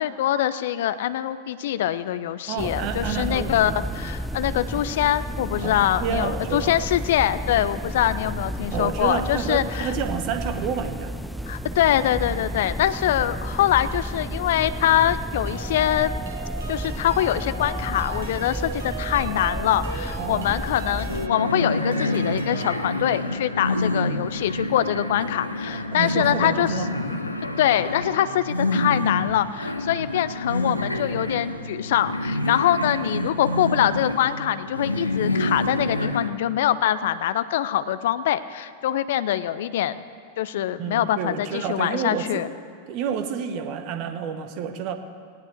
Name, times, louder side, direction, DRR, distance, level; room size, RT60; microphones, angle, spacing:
voice 1, 0.0-9.9 11.5-16.2 16.7-26.7 27.6-40.0 40.4-42.5, left 11 dB, 55° left, 14 dB, 0.6 m, -24 dB
voice 2, 2.5-4.1 5.6-6.7 8.7-11.2 20.2-20.5 25.7-27.2 40.8-42.5 42.9-44.9, right 7 dB, 40° right, 8 dB, 1.3 m, -30 dB
sound 1, 2.6-21.3, equal, ahead, 0.3 m, -32 dB
sound 2, 15.5-22.8, right 3 dB, 65° right, 1.6 m, -36 dB
sound 3, 21.1-36.3, left 1 dB, 85° left, 0.9 m, -27 dB
18.5 x 18.0 x 3.5 m, 2.2 s
figure-of-eight pair, 90°, 0 cm